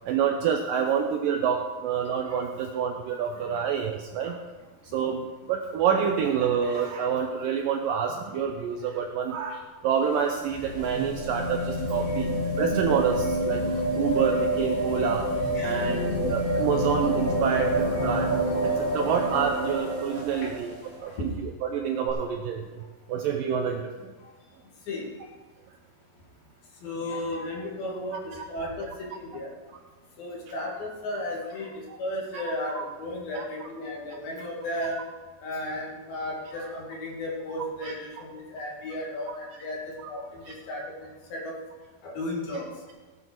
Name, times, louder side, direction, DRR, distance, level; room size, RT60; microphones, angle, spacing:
voice 1, 0.1-4.4 4.9-12.3 12.6-13.6 14.0-15.3 15.6-18.3 18.6-20.7 21.0-24.1 28.4-28.5 31.9-32.0 32.3-32.4 32.7-32.9 33.3-33.4 37.8-37.9 40.5-40.6, right 7 dB, 75° right, 3 dB, 2.1 m, -28 dB
sound 1, 9.9-20.9 22.1-22.2, right 1 dB, 5° left, 2.8 m, -28 dB
voice 2, 15.5-16.2 20.3-20.5 21.0-21.3 24.2-24.3 24.9-25.1 26.8-29.5 30.2-35.1 35.4-41.6 42.0-42.7, left 1 dB, 65° left, -2 dB, 3.9 m, -35 dB
16.5 x 9.6 x 4.6 m, 1.3 s
omnidirectional pair, 4.7 m